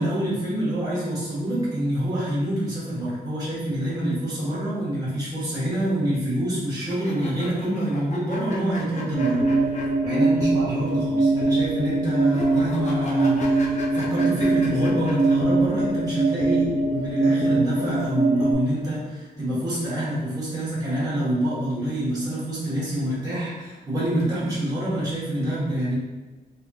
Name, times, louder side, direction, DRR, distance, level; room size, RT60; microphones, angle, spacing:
voice 1, 0.0-9.4 10.0-25.9, right 1 dB, 20° right, -10 dB, 1.0 m, -26 dB
sound 1, 6.8-10.5 10.7-10.8 12.2-15.3, left 3 dB, 45° left, 0.5 m, -38 dB
sound 2, 9.1-18.5, right 2 dB, 45° right, 0.4 m, -22 dB
3.5 x 2.7 x 2.2 m, 1.2 s
wide cardioid pair, 170°, 17 cm